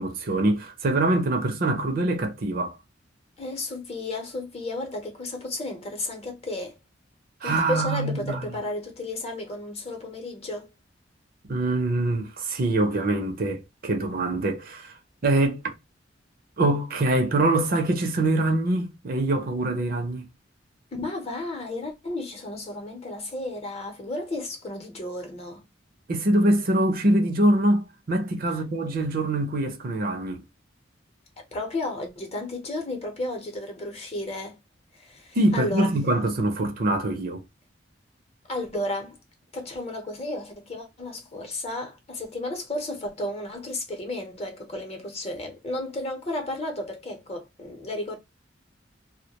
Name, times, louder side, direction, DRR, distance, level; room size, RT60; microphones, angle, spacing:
voice 1, 0.0-2.8 7.4-8.5 11.4-14.9 15.2-15.7 16.6-20.3 26.1-30.4 35.4-37.4, right 1 dB, 50° right, 0.5 m, -24 dB
voice 2, 3.4-6.8 7.4-10.7 21.0-25.7 31.5-34.6 34.9-35.9 38.5-39.2 39.5-48.2, left 2 dB, 35° left, 0.8 m, -33 dB
2.2 x 2.1 x 2.8 m
head